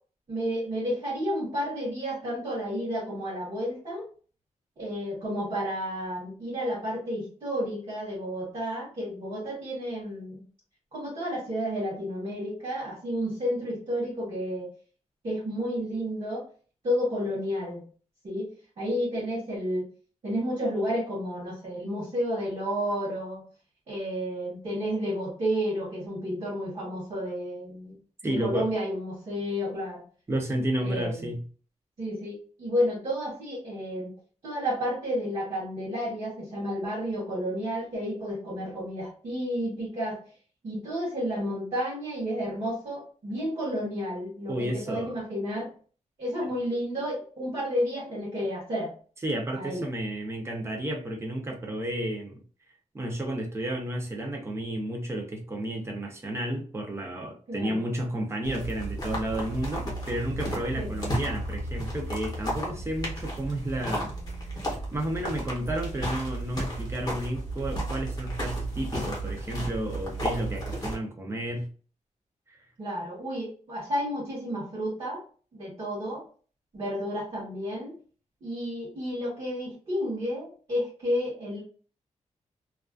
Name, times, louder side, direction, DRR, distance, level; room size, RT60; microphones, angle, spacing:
voice 1, 0.3-4.1 4.8-10.4 10.9-14.7 15.2-16.5 16.8-17.8 18.2-18.5 18.8-19.9 20.2-23.4 23.9-28.0 28.2-30.0 30.8-31.3 32.0-34.1 34.4-40.2 40.6-45.7 46.2-48.9 49.6-49.9 57.5-57.8 60.8-60.9 72.8-75.2 75.5-76.2 76.7-78.0 78.4-81.6, equal, 45° right, 0.9 m, -31 dB
voice 2, 28.2-28.7 30.3-31.4 44.5-45.2 49.2-52.4 52.9-64.1 64.9-71.7 72.5-72.6, right 1 dB, 20° right, 0.5 m, -32 dB
sound 1, 58.4-71.0, right 1 dB, 30° left, 0.8 m, -33 dB
2.3 x 2.3 x 2.3 m
wide cardioid pair, 180°, 13 cm